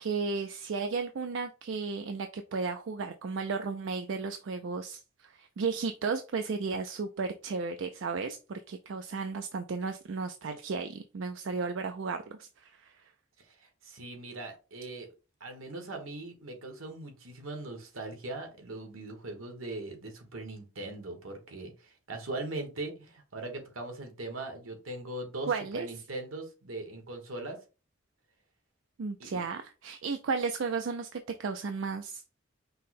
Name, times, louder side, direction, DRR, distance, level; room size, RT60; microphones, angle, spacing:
voice 1, 0.0-13.0 25.5-25.9 29.0-32.2, right 4 dB, 65° right, 0.4 m, -34 dB
voice 2, 13.8-15.1 15.4-27.6 29.2-29.4, right 2 dB, 85° right, 1.3 m, -40 dB
5.5 x 2.1 x 4.1 m
head